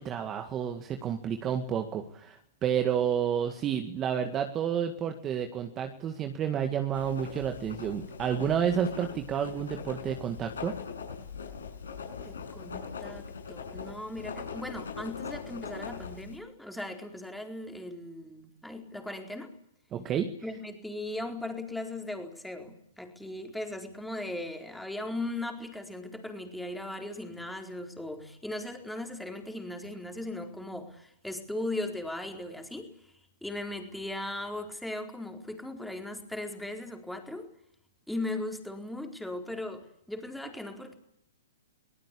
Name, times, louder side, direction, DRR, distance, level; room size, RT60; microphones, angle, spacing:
voice 1, 0.0-10.7 19.9-20.3, right 8 dB, 25° right, 6 dB, 1.9 m, -30 dB
Writing, 6.9-16.4, left 6 dB, 90° left, 6.9 m, -41 dB
voice 2, 12.2-19.5 20.4-33.1 33.4-37.5 38.1-40.9, left 1 dB, ahead, 4 dB, 4.2 m, -38 dB
25.0 x 18.5 x 8.6 m, 0.75 s
hypercardioid pair, 140°, 0 cm